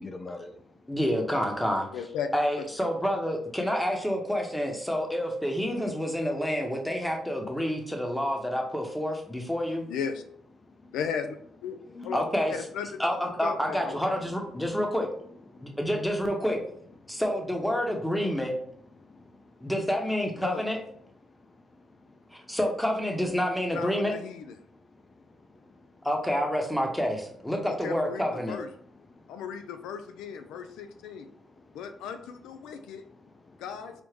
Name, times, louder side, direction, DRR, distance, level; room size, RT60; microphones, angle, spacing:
voice 1, 0.0-0.8 10.6-10.9 11.9-12.2 14.5-14.7 15.5-15.8 17.0-17.2 19.0-19.7 21.2-22.6 24.7-26.1 29.1-29.4 31.2-31.8 32.6-33.6, left 2 dB, 30° left, 7 dB, 0.5 m, -49 dB
voice 2, 0.9-1.9 2.3-9.8 12.1-12.6 13.0-15.1 15.6-16.6 17.1-18.5 19.6-20.8 22.3-24.1 26.0-28.6, equal, 5° left, 2 dB, 0.8 m, -28 dB
voice 3, 1.9-2.3 2.6-2.9 9.9-10.2 10.9-11.8 12.0-12.2 12.5-12.9 13.4-14.2 20.4-20.6 23.7-24.5 27.6-28.7 29.3-31.3 31.7-33.0 33.6-34.0, left 7 dB, 90° left, 8 dB, 0.3 m, -36 dB
4.8 x 2.0 x 3.2 m, 0.65 s
cardioid pair, 90°, 0 cm